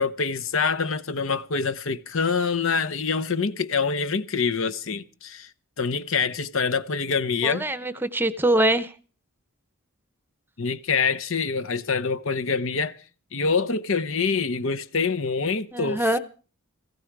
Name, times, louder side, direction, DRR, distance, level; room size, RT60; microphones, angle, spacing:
voice 1, 0.0-5.5 5.8-7.7 10.6-13.0 13.3-16.2, left 5 dB, 60° left, 0.8 m, -25 dB
voice 2, 7.4-8.9 15.7-16.2, right 1 dB, 10° right, 0.8 m, -23 dB
18.5 x 15.5 x 4.7 m
head